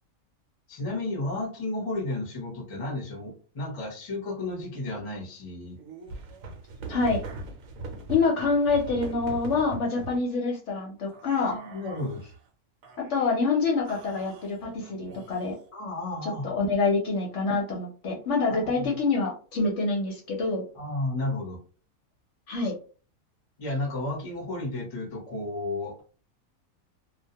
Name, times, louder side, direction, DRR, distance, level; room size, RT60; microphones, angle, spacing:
voice 1, 0.7-5.8 11.4-12.2 15.7-16.5 18.5-18.9 20.7-21.6 22.6-22.7 23.6-26.0, left 2 dB, 30° left, 1 dB, 0.7 m, -33 dB
sound 1, 5.8-10.2 11.1-12.4 12.8-13.4 13.9-15.7, right 3 dB, 75° right, 1.0 m, -41 dB
voice 2, 6.9-7.2 8.1-11.5 13.0-15.6 16.2-20.6 22.5-22.8, left 4 dB, 60° left, 0 dB, 0.9 m, -26 dB
2.4 x 2.2 x 2.7 m, 0.38 s
omnidirectional pair, 1.5 m